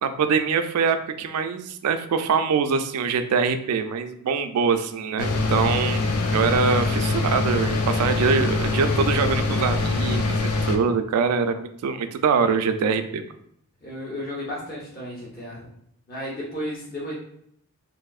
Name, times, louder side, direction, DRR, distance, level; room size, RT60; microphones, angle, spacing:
voice 1, 0.0-6.0 6.3-13.2, right 5 dB, 85° right, 9 dB, 0.3 m, -23 dB
sound 1, 5.2-10.8, left 3 dB, 80° left, 0.4 m, -24 dB
voice 2, 13.8-15.6 16.1-17.1, equal, 40° left, -5 dB, 0.8 m, -33 dB
3.4 x 2.5 x 2.3 m, 0.71 s
head